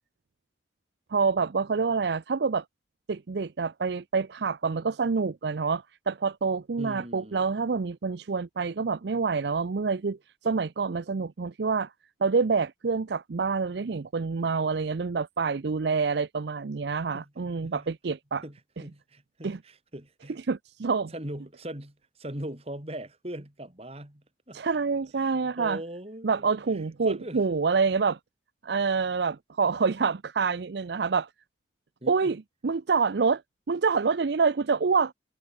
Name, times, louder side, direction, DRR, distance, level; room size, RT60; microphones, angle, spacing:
voice 1, 1.1-2.6 3.1-10.2 10.4-11.9 12.2-18.4 19.4-19.6 20.5-21.1 24.5-25.8 26.2-28.2 28.6-31.3 32.1-33.4 33.7-35.1, right 5 dB, 65° right, 0.5 m, -27 dB
voice 2, 6.8-7.5 17.1-17.3 17.6-17.9 18.4-20.4 21.1-24.6 25.2-26.5 27.0-27.4 32.0-32.3, right 1 dB, 35° right, 3.2 m, -40 dB
head